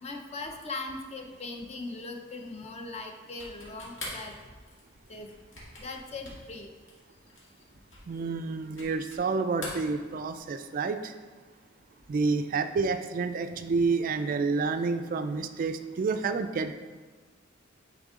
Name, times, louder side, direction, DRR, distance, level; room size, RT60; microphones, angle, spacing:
voice 1, 0.0-4.3 5.1-5.3 5.8-6.7, left 3 dB, 35° left, 3 dB, 0.6 m, -39 dB
sound 1, 3.3-9.3 9.5-10.6, left 2 dB, 70° left, 2.1 m, -44 dB
voice 2, 8.1-11.1 12.1-16.7, right 4 dB, 45° right, 9 dB, 0.3 m, -29 dB
9.9 x 3.6 x 3.6 m, 1.4 s
head